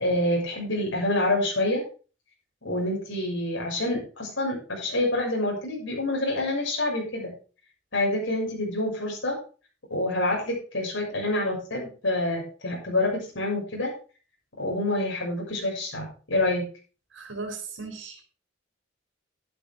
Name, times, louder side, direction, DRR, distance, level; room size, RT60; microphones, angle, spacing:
voice 1, 0.0-1.8 2.6-7.3 7.9-9.4 9.9-13.9 14.6-16.6, left 1 dB, 85° left, -2 dB, 6.6 m, -27 dB
voice 2, 17.1-18.2, right 3 dB, 80° right, 4 dB, 3.2 m, -37 dB
11.5 x 10.5 x 3.6 m, 0.37 s
head